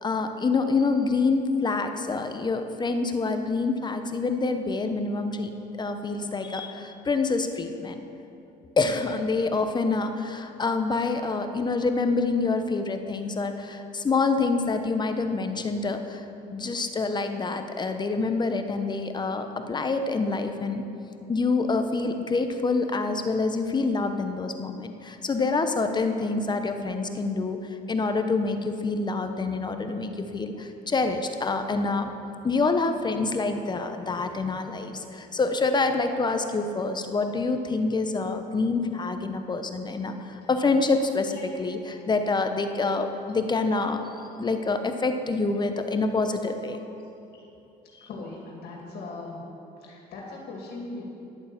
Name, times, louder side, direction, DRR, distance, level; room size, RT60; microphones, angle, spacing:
voice 1, 0.0-5.5 5.8-8.0 8.8-16.2 16.5-20.8 21.3-27.6 27.9-32.1 32.4-44.0 44.4-46.8 48.0-48.1, left 3 dB, 25° left, 7 dB, 0.9 m, -26 dB
voice 2, 48.0-49.4 49.8-51.0, left 3 dB, 70° left, -1 dB, 2.5 m, -39 dB
11.0 x 8.6 x 7.3 m, 2.9 s
cardioid pair, 110°, 17 cm